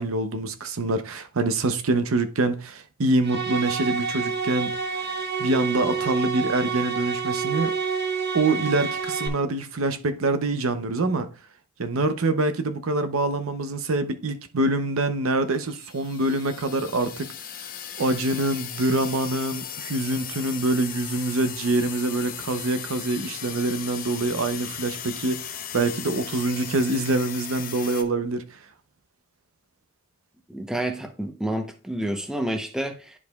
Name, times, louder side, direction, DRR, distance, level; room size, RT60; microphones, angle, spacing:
voice 1, 0.0-7.7 8.3-11.3 11.8-17.3 18.0-28.6, right 2 dB, 80° right, 0.7 m, -25 dB
sound 1, 3.2-9.3, right 5 dB, 55° right, 0.9 m, -28 dB
sound 2, 15.6-28.0, left 9 dB, 45° left, 0.7 m, -37 dB
voice 2, 30.5-33.1, right 1 dB, 5° right, 0.7 m, -29 dB
10.5 x 4.9 x 2.3 m
head